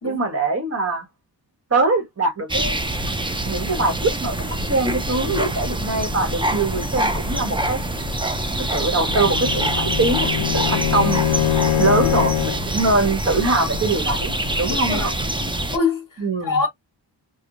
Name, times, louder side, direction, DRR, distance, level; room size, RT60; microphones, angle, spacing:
voice 1, 0.0-1.0 1.7-2.8 3.4-7.8 8.6-11.2 11.8-14.3 14.6-15.1 16.2-16.6, right 3 dB, 35° right, 1.3 m, -22 dB
sound 1, 2.5-15.8, right 1 dB, 10° right, 0.5 m, -25 dB
Bowed string instrument, 8.8-12.7, left 12 dB, 85° left, 0.6 m, -23 dB
voice 2, 14.7-15.1 15.7-16.7, left 4 dB, 45° left, 1.4 m, -25 dB
4.7 x 2.3 x 2.6 m
wide cardioid pair, 130°, 45 cm